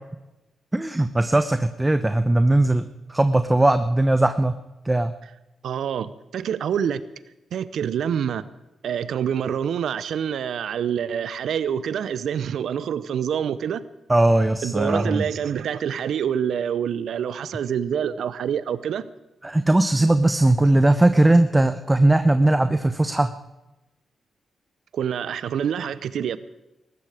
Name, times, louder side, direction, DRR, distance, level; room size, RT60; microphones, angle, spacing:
voice 1, 0.7-2.8 3.1-4.5 4.8-5.1 14.1-15.2 19.4-23.3, right 2 dB, 20° right, 10 dB, 1.0 m, -19 dB
voice 2, 5.6-7.0 7.5-8.4 8.8-13.8 14.6-19.1 24.9-26.4, right 8 dB, 70° right, 16 dB, 0.7 m, -26 dB
19.0 x 15.0 x 4.9 m, 0.97 s
hypercardioid pair, 45°, 0 cm